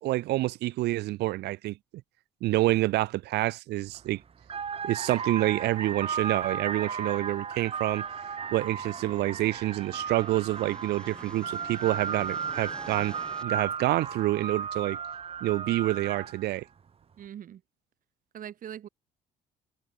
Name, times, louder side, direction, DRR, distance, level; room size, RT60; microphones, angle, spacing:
voice 1, 0.0-1.8 2.4-4.2 4.8-8.0 8.5-13.2 13.4-15.0 15.4-16.6, right 17 dB, 80° right, 1.2 m, -27 dB
sound 1, 3.8-4.0 4.4-16.5, right 6 dB, 35° right, 2.1 m, -35 dB
sound 2, 6.2-13.4, left 1 dB, 5° left, 8.0 m, -50 dB
voice 2, 17.2-17.6 18.3-18.9, right 10 dB, 55° right, 4.4 m, -41 dB
cardioid pair, 110°, 17 cm